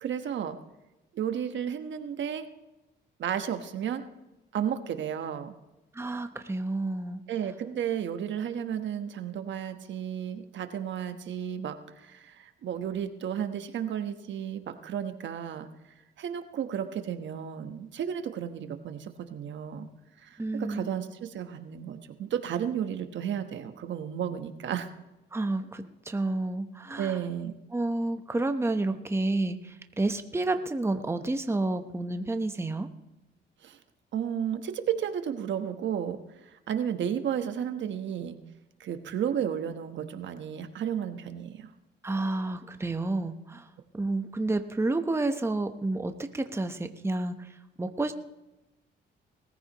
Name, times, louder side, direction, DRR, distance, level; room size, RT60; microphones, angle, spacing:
voice 1, 0.0-0.6 1.1-2.5 3.2-4.0 4.5-5.5 7.3-15.7 16.2-19.9 20.2-24.9 27.0-27.6 33.6-33.8 34.1-36.2 36.4-38.4 38.8-41.7, right 9 dB, 70° right, 8 dB, 1.2 m, -33 dB
voice 2, 5.9-7.2 20.4-21.0 25.3-27.2 27.7-32.9 42.0-43.7 43.9-47.5 47.8-48.1, right 2 dB, 15° right, 7 dB, 1.0 m, -30 dB
20.5 x 14.5 x 3.0 m, 0.99 s
cardioid pair, 90°, 20 cm